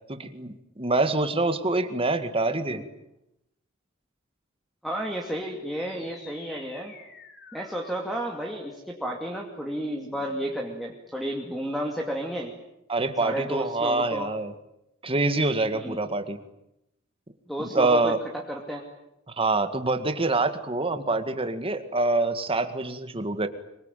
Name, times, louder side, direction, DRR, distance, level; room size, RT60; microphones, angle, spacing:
voice 1, 0.1-2.8 12.9-14.5 15.0-16.4 17.6-18.2 19.4-23.5, right 2 dB, 25° right, 8 dB, 2.0 m, -25 dB
voice 2, 4.8-6.9 7.5-12.5 13.2-14.3 15.7-16.0 17.5-18.8, equal, ahead, 1 dB, 2.5 m, -32 dB
sound 1, 5.7-10.8, left 3 dB, 55° left, 5.1 m, -50 dB
25.0 x 23.5 x 9.2 m, 0.85 s
head